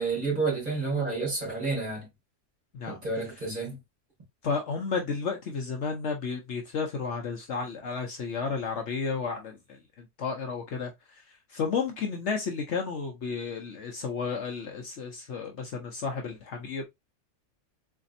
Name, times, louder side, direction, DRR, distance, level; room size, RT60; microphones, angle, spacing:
voice 1, 0.0-2.1 2.9-3.8, right 3 dB, 35° right, 2.4 m, -30 dB
voice 2, 2.7-3.0 4.4-16.8, left 5 dB, 60° left, 0.9 m, -32 dB
4.0 x 3.3 x 2.6 m
omnidirectional pair, 1.5 m